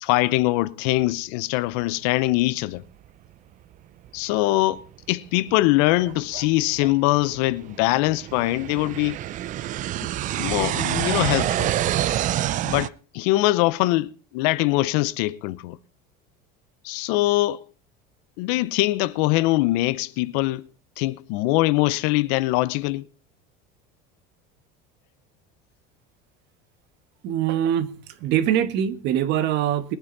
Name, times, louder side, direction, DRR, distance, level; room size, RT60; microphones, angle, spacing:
voice 1, 0.0-2.8 4.1-4.8 5.1-9.2 10.0-10.1 10.4-11.7 12.6-15.8 16.8-17.6 18.4-20.6 21.0-23.1, left 18 dB, 75° left, 0.8 m, -22 dB
sound 1, 4.1-4.2 4.8-4.9 5.5-12.9, right 13 dB, 35° right, 0.5 m, -27 dB
voice 2, 27.2-30.0, right 10 dB, 55° right, 1.5 m, -23 dB
21.5 x 8.9 x 4.0 m
cardioid pair, 145°, 21 cm